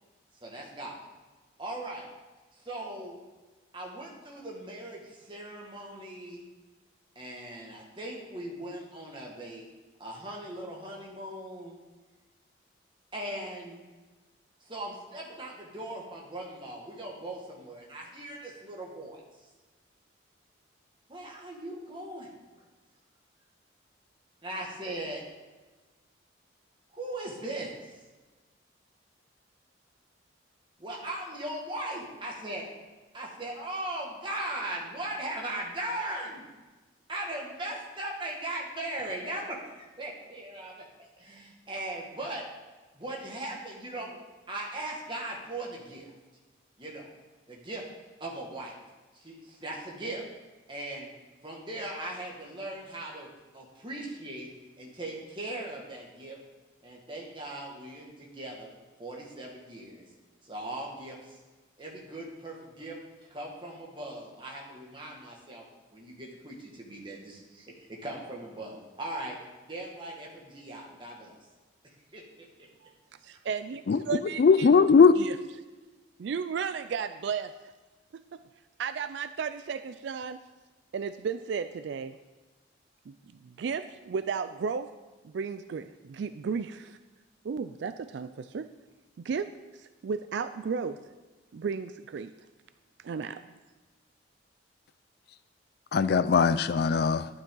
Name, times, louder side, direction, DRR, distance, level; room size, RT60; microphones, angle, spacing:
voice 1, 0.4-1.0 1.6-2.1 2.6-3.1 3.7-6.4 7.2-9.7 10.0-11.8 13.1-13.8 14.6-19.2 21.1-22.3 24.4-25.2 26.9-27.7 30.8-32.7 33.1-36.4 37.1-40.8 41.2-42.4 42.9-44.2 44.5-46.1 46.8-47.1 47.5-47.8 48.2-48.8 49.2-50.2 50.7-51.1 51.4-53.3 53.5-54.5 54.8-56.4 56.8-58.7 59.0-60.1 60.4-61.4 61.8-63.0 63.3-65.6 65.9-69.4 69.6-71.4 72.1-72.7, right 1 dB, 25° right, -2 dB, 1.8 m, -39 dB
voice 2, 73.2-73.8 74.1-74.7 75.2-75.4 76.2-77.5 78.1-78.4 78.8-80.4 80.9-82.2 83.1-83.2 83.4-84.9 85.2-87.0 87.4-88.7 89.2-91.0 91.5-92.3 93.0-93.5, right 6 dB, 65° right, 12 dB, 0.3 m, -34 dB
voice 3, 74.4-75.2 95.9-97.3, left 5 dB, 55° left, 14 dB, 0.3 m, -20 dB
12.0 x 8.5 x 3.9 m, 1.3 s
head